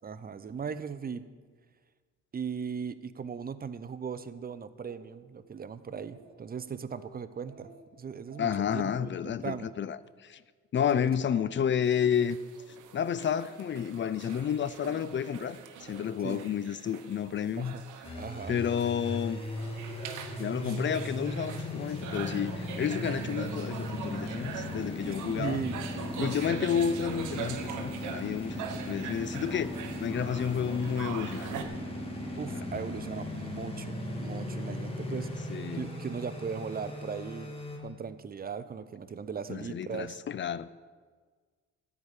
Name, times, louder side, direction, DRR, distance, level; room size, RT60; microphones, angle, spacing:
voice 1, 0.0-1.3 2.3-9.7 10.9-11.5 16.2-16.4 17.5-17.8 18.1-18.6 20.1-20.3 20.6-20.7 25.4-25.8 26.2-26.4 32.4-37.5 37.8-40.2, right 6 dB, 30° right, 0.7 m, -38 dB
Speech, 4.1-4.3 4.7-5.0 5.4-5.5 5.9-6.5 6.9-7.1 7.4-7.8 8.1-9.2, right 2 dB, 60° right, 3.6 m, -54 dB
voice 2, 8.4-10.4 10.7-12.4 12.9-17.8 18.5-19.4 20.4-25.6 26.2-31.5 32.5-32.6 35.1-35.2 35.5-35.9 39.5-40.7, left 8 dB, 40° left, 0.5 m, -31 dB
sound 1, 11.8-31.6, right 8 dB, 85° right, 1.1 m, -43 dB
sound 2, 18.0-37.8, left 1 dB, 20° left, 2.1 m, -37 dB
13.5 x 4.9 x 8.9 m
cardioid pair, 90°, 30 cm